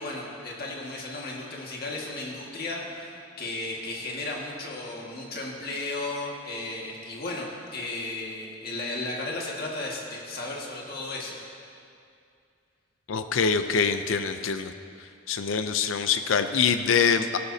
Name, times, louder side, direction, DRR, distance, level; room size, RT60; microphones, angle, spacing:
voice 1, 0.0-11.4, left 2 dB, 50° left, -2 dB, 1.8 m, -34 dB
voice 2, 13.1-14.7 15.3-17.4, left 6 dB, 90° left, 9 dB, 0.5 m, -24 dB
15.5 x 12.0 x 2.8 m, 2.4 s
head